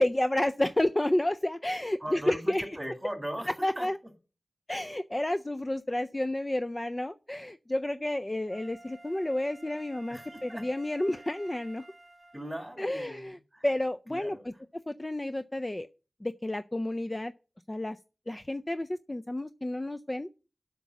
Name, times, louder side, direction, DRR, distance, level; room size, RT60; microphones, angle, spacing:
voice 1, 0.0-2.6 3.6-4.0 4.7-11.8 12.8-13.4 13.6-14.4 14.9-15.9 16.2-17.3 17.7-18.0 18.3-20.5, left 1 dB, 25° left, 0.4 m, -30 dB
voice 2, 2.0-3.9 10.1-10.7 12.3-13.7 14.1-14.6, equal, 10° right, 3.0 m, -39 dB
Wind instrument woodwind instrument, 8.5-12.7 13.3-13.4, right 2 dB, 30° right, 1.5 m, -52 dB
8.2 x 5.9 x 8.0 m
wide cardioid pair, 85°, 0 cm